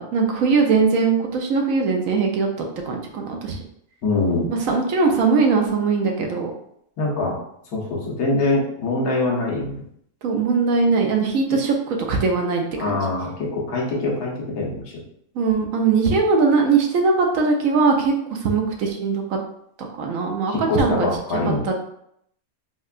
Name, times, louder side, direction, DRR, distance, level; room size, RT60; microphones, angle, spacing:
voice 1, 0.0-2.5 2.8-3.6 4.6-6.5 10.2-11.7 12.1-13.0 15.3-19.4 19.8-21.4 21.6-21.7, right 4 dB, 70° right, 2 dB, 1.0 m, -20 dB
voice 2, 4.0-4.5 7.0-7.4 7.7-9.8 12.8-14.8 20.5-21.6, left 2 dB, 85° left, -3 dB, 1.4 m, -23 dB
4.4 x 2.2 x 2.4 m, 0.71 s
omnidirectional pair, 1.5 m